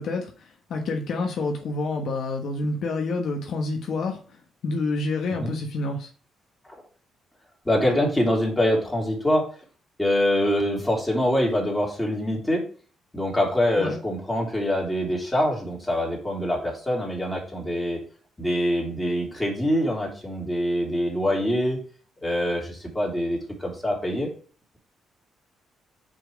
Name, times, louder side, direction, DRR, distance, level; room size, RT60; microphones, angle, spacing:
voice 1, 0.0-4.2 4.6-6.1 13.8-14.0, left 3 dB, 65° left, 2 dB, 1.2 m, -28 dB
voice 2, 7.6-9.4 10.0-12.6 13.1-18.0 18.4-21.8 22.2-24.3, equal, 10° left, -2 dB, 3.2 m, -24 dB
5.8 x 5.1 x 4.7 m, 0.39 s
cardioid pair, 90°, 0 cm